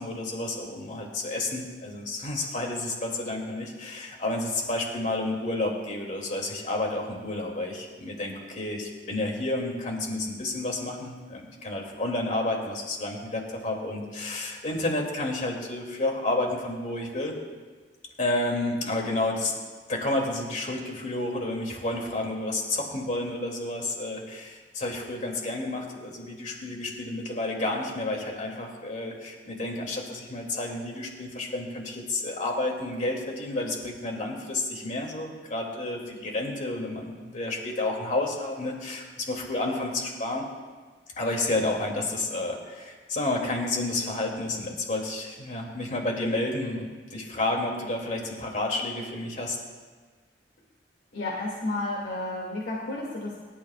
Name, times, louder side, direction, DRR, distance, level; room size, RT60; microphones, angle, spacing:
voice 1, 0.0-17.3 18.2-19.6 19.9-40.4 41.2-49.6, left 2 dB, 45° left, 0 dB, 2.8 m, -30 dB
voice 2, 51.1-53.4, left 2 dB, 80° left, -4 dB, 2.5 m, -32 dB
25.0 x 12.5 x 2.5 m, 1.4 s
head